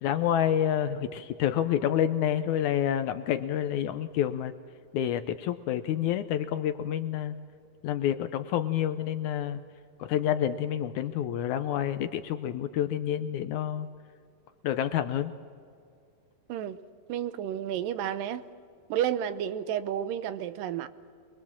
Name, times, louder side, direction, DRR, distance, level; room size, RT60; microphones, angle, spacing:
voice 1, 0.0-4.5 4.9-7.4 7.8-9.6 10.0-13.9 14.6-15.3, left 10 dB, 75° left, 10 dB, 1.9 m, -28 dB
voice 2, 16.5-16.8 17.1-18.4 18.9-20.9, right 10 dB, 80° right, 13 dB, 2.5 m, -31 dB
25.5 x 21.5 x 7.4 m, 2.3 s
omnidirectional pair, 3.9 m